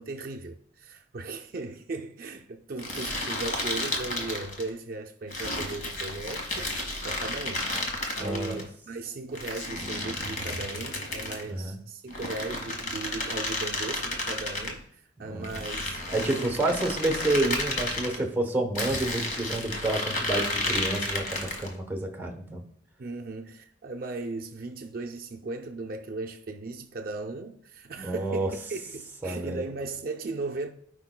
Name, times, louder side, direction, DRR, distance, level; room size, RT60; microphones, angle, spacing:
voice 1, 0.0-6.7 7.0-7.7 8.2-16.0 16.3-16.5 17.0-17.1 18.0-18.3 23.0-30.7, right 3 dB, 50° right, 0.5 m, -37 dB
Foley Leather Stress Mono, 2.8-4.7 5.3-8.6 9.4-11.5 12.1-14.8 15.4-18.2 18.8-21.7, left 2 dB, 45° left, 1.5 m, -32 dB
voice 2, 8.2-8.6 11.4-11.7 15.2-15.6 16.1-22.6 28.0-28.5 29.2-29.7, right 2 dB, 10° right, 1.0 m, -29 dB
13.5 x 5.0 x 2.2 m
head